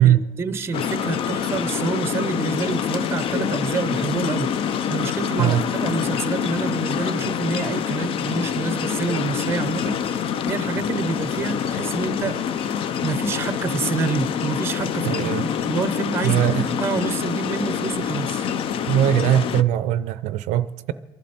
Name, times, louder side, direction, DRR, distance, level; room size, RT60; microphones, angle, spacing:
voice 1, 0.0-4.5 4.9-12.4 12.8-15.2 15.4-18.5, right 4 dB, 20° right, 12 dB, 0.6 m, -28 dB
sound 1, 0.7-19.6, left 8 dB, 40° left, 0.5 m, -26 dB
voice 2, 15.0-15.4 16.2-16.7 18.8-20.9, right 12 dB, 60° right, 15 dB, 0.5 m, -20 dB
27.5 x 11.5 x 4.3 m, 1.3 s
cardioid pair, 155°, 14 cm